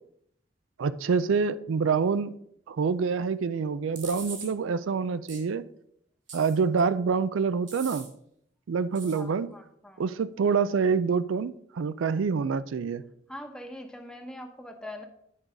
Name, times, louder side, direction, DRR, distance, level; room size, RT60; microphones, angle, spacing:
voice 1, 0.8-2.3 2.7-5.6 6.3-8.1 8.7-9.5 10.0-13.0, right 5 dB, 90° right, 15 dB, 0.4 m, -26 dB
sound 1, 4.0-4.5 5.3-5.4 6.3-6.8 7.7-8.1 9.0-9.2, right 5 dB, 70° right, 2.4 m, -41 dB
voice 2, 9.1-10.1 13.3-15.1, left 1 dB, 5° left, 4 dB, 0.9 m, -42 dB
10.0 x 4.7 x 5.0 m, 0.72 s
head